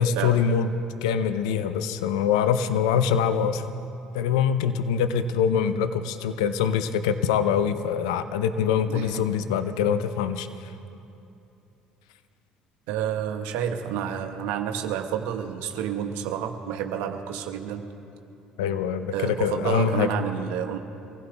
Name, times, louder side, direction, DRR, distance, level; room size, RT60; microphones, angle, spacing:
voice 1, 0.0-3.6 4.1-10.5 18.6-20.1, left 7 dB, 85° left, 10 dB, 0.7 m, -24 dB
voice 2, 8.9-9.3 12.9-17.9 19.1-20.8, right 9 dB, 80° right, 5 dB, 1.1 m, -29 dB
24.5 x 16.0 x 3.5 m, 2.8 s
hypercardioid pair, 65°, 3 cm